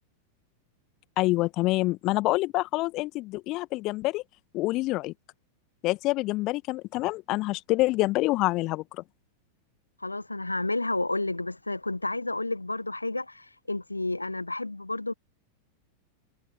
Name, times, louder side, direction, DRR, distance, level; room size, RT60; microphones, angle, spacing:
voice 1, 1.2-4.2 4.5-5.1 5.8-8.8, left 20 dB, 40° left, 1.6 m, -26 dB
voice 2, 10.0-15.1, left 2 dB, 85° left, 1.3 m, -31 dB
figure-of-eight pair, 90°, 0 cm